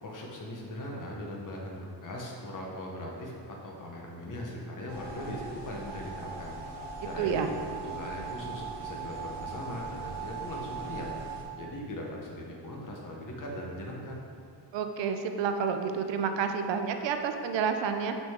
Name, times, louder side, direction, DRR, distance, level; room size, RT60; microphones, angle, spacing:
voice 1, 0.0-11.1 11.6-14.2, left 1 dB, 45° left, -1 dB, 1.0 m, -40 dB
sound 1, 4.9-11.4, right 5 dB, 65° right, 1.3 m, -40 dB
voice 2, 7.2-7.5 14.7-18.2, right 6 dB, 85° right, 6 dB, 0.6 m, -29 dB
6.3 x 5.1 x 3.6 m, 2.4 s
wide cardioid pair, 170°, 43 cm